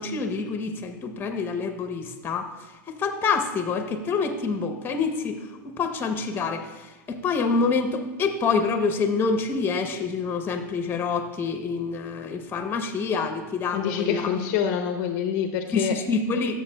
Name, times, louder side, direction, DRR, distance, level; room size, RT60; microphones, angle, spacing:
voice 1, 0.0-2.5 2.9-5.4 5.6-14.4 15.7-16.6, left 4 dB, 20° left, 6 dB, 0.8 m, -27 dB
voice 2, 13.7-15.9, left 8 dB, 45° left, 5 dB, 0.6 m, -26 dB
12.5 x 6.7 x 2.3 m, 1.2 s
hypercardioid pair, 130°, 11 cm